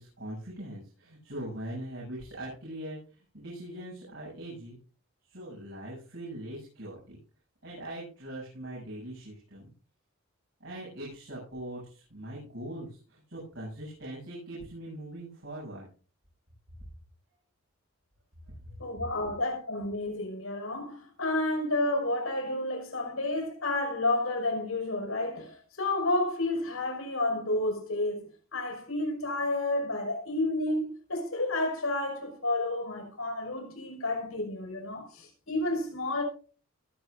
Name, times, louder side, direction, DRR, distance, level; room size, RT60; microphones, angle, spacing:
voice 1, 0.0-4.8 5.3-7.2 7.6-9.7 10.6-15.9 18.6-18.7, right 1 dB, 60° right, 8.0 m, -41 dB
voice 2, 18.8-28.2 28.5-36.2, left 2 dB, 75° left, 5.7 m, -30 dB
20.5 x 10.5 x 2.6 m
head